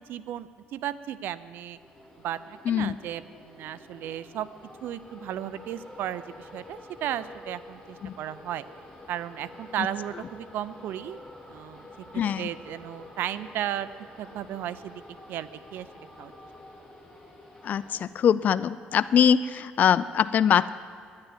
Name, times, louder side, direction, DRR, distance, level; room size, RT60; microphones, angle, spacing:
voice 1, 0.0-1.8 2.2-4.5 4.8-8.6 9.1-11.2 11.5-11.9 12.4-13.9 14.2-14.9 15.3-15.9 16.2-16.3, right 11 dB, 75° right, 15 dB, 0.5 m, -34 dB
sound 1, 1.7-18.0, left 1 dB, 10° left, 3.4 m, -48 dB
voice 2, 2.7-3.0 8.0-8.1 12.1-12.5 17.6-20.7, left 8 dB, 50° left, 15 dB, 0.3 m, -23 dB
10.0 x 9.7 x 9.2 m, 2.2 s
cardioid pair, 105°, 4 cm